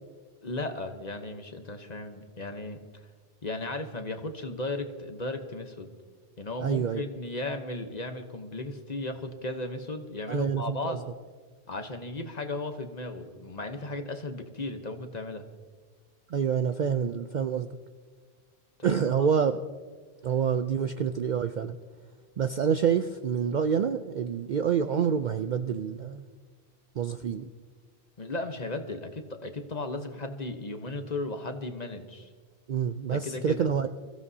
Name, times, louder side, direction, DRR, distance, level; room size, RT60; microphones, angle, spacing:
voice 1, 0.4-2.8 3.4-5.9 6.4-11.1 11.7-15.4 18.8-18.9 28.2-32.3 33.1-33.7, left 2 dB, 40° left, 6 dB, 1.0 m, -35 dB
voice 2, 6.6-7.0 10.3-11.0 16.3-17.7 18.8-19.6 20.2-21.8 22.4-26.2 27.0-27.5 32.7-33.9, right 7 dB, 60° right, 9 dB, 0.5 m, -27 dB
24.0 x 15.0 x 2.8 m, 1.5 s
omnidirectional pair, 1.2 m